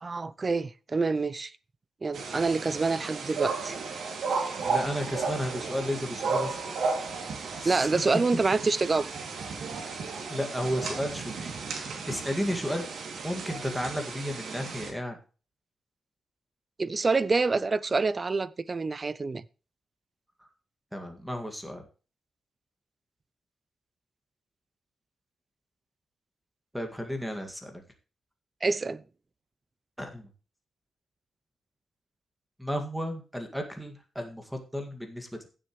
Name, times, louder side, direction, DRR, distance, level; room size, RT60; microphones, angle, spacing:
voice 1, 0.0-1.5 2.0-3.8 7.6-9.1 16.8-19.4 28.6-29.0, right 4 dB, 25° right, 0.5 m, -27 dB
sound 1, 2.1-14.9, right 4 dB, 70° right, 2.6 m, -34 dB
voice 2, 4.6-6.6 7.6-8.0 10.3-11.5 12.1-12.9 13.2-15.2 20.9-21.8 26.7-27.7 30.0-30.3 32.6-35.5, equal, ahead, 2.0 m, -33 dB
16.0 x 7.5 x 3.2 m
wide cardioid pair, 160°, 0 cm